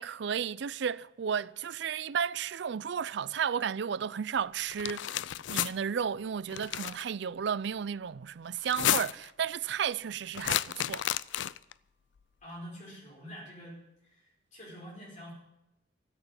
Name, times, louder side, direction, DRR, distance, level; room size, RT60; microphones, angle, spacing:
voice 1, 0.0-5.2 5.5-11.0, right 7 dB, 65° right, 0.4 m, -33 dB
sound 1, 4.7-5.7 6.5-7.0 8.6-9.3 10.3-11.7, left 11 dB, 75° left, 0.4 m, -31 dB
voice 2, 12.4-15.3, equal, 45° left, 5.2 m, -47 dB
13.5 x 8.2 x 9.3 m
head